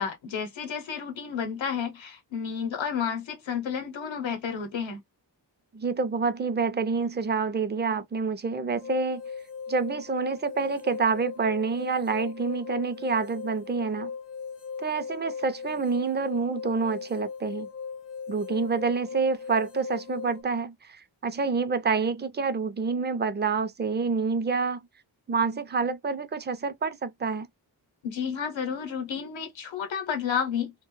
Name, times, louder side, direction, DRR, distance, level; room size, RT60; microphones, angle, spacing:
voice 1, 0.0-5.0 28.0-30.7, left 7 dB, 85° left, 0.7 m, -31 dB
voice 2, 5.7-9.2 9.7-14.1 14.8-17.7 18.3-24.9 25.3-27.5, right 4 dB, 25° right, 0.4 m, -27 dB
sound 1, 8.7-20.4, left 6 dB, 40° left, 0.4 m, -38 dB
2.1 x 2.0 x 3.0 m
wide cardioid pair, 65°, 45 cm